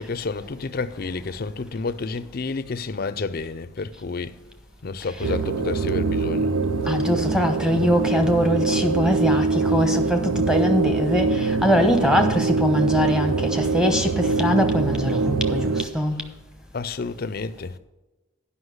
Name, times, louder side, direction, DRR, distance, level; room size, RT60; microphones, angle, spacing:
voice 1, 0.0-4.4 4.8-6.5 16.7-17.8, left 4 dB, 45° left, 0.5 m, -30 dB
sound 1, 5.2-15.8, right 3 dB, 90° right, 0.6 m, -23 dB
voice 2, 6.9-16.2, equal, 5° right, 0.9 m, -22 dB
9.8 x 5.7 x 7.9 m
head